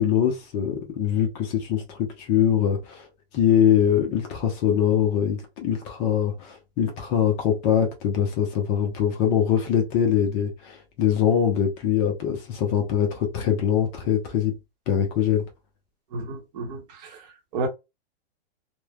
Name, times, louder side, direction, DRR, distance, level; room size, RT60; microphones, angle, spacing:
voice 1, 0.0-3.1 3.3-14.5 14.9-15.5, left 9 dB, 30° left, 0.6 m, -23 dB
voice 2, 16.1-17.7, right 3 dB, 40° right, 0.8 m, -32 dB
3.1 x 2.1 x 2.3 m
hypercardioid pair, 150°, 32 cm